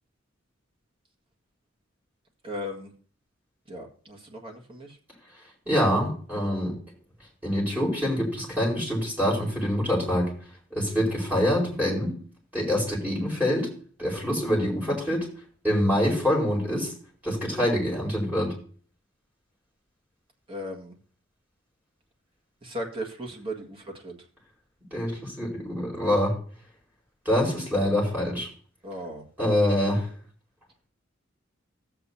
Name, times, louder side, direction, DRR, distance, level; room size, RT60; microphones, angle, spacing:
voice 1, 2.4-2.9 3.7-5.0 20.5-21.0 22.6-24.2 28.8-29.3, equal, 30° right, 0 dB, 1.8 m, -37 dB
voice 2, 5.7-6.7 7.4-10.3 10.7-12.1 12.5-13.7 14.0-15.3 15.6-16.9 17.2-18.5 24.9-26.3 27.2-28.5 29.4-30.1, equal, 10° right, -4 dB, 4.6 m, -25 dB
16.0 x 8.1 x 2.8 m, 0.43 s
head